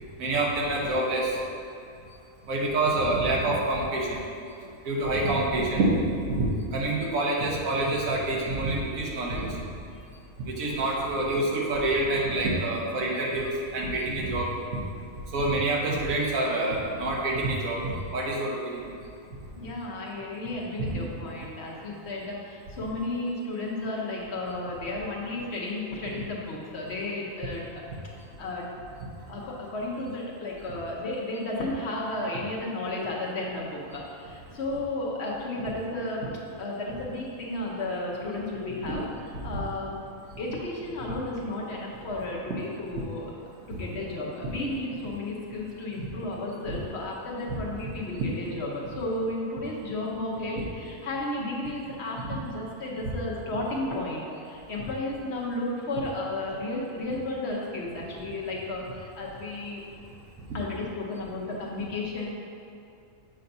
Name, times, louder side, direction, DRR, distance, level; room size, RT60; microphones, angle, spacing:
voice 1, 0.2-1.4 2.5-4.2 4.8-6.0 6.3-9.6 10.4-14.5 15.3-18.8 20.8-20.9 38.8-38.9 39.5-39.6 43.7-43.8 44.4-44.5 46.0-46.1 46.7-46.8 47.5-47.6 48.2-48.3 52.2-52.3 60.5-60.6, right 2 dB, 80° right, -3 dB, 1.4 m, -27 dB
voice 2, 19.6-27.8 28.4-28.7 29.3-36.2 36.6-39.1 39.4-40.0 40.4-43.3 43.7-59.8 60.5-62.3, left 2 dB, 55° left, -3 dB, 1.0 m, -33 dB
7.6 x 5.6 x 2.6 m, 2.5 s
omnidirectional pair, 1.4 m